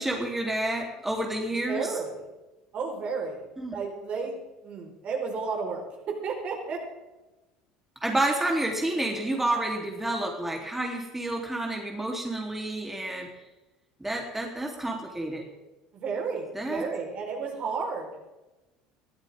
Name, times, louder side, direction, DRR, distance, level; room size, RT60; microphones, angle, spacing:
voice 1, 0.0-1.9 3.6-3.7 8.0-13.3 14.0-15.4 16.5-16.8, right 1 dB, 10° right, 0 dB, 3.4 m, -29 dB
voice 2, 1.6-2.3 2.7-3.5 3.7-6.8 15.9-18.2, right 5 dB, 45° right, 1 dB, 4.6 m, -32 dB
21.5 x 13.5 x 3.7 m, 1.1 s
figure-of-eight pair, 65°, 3 cm